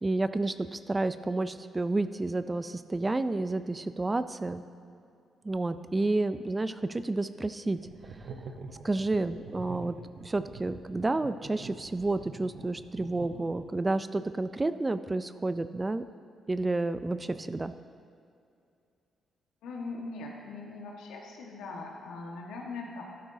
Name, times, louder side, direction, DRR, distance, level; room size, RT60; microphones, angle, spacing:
voice 1, 0.0-4.6 5.4-7.8 8.8-10.0 10.2-16.0 16.5-17.7, right 2 dB, 25° right, 12 dB, 0.4 m, -30 dB
sound 1, 7.8-13.9, right 4 dB, 65° right, 0.8 m, -45 dB
voice 2, 19.6-23.0, left 3 dB, 85° left, -1 dB, 1.5 m, -40 dB
12.5 x 12.0 x 2.8 m, 2.5 s
supercardioid pair, 60°, 0 cm